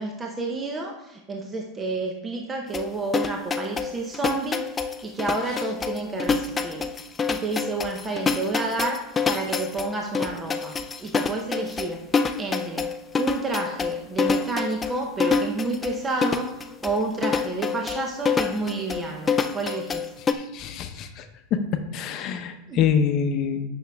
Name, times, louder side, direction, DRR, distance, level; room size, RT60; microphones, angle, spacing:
voice 1, 0.0-6.8 7.3-9.0 9.3-12.0 12.4-12.8 13.2-20.1 22.7-22.9, right 2 dB, 15° right, 2 dB, 0.7 m, -30 dB
sound 1, 2.7-20.3, left 5 dB, 15° left, 0.4 m, -27 dB
voice 2, 20.3-21.3 21.5-21.6 21.9-23.6, left 7 dB, 40° left, 7 dB, 0.8 m, -25 dB
8.7 x 6.1 x 3.5 m, 0.95 s
supercardioid pair, 145°, 0 cm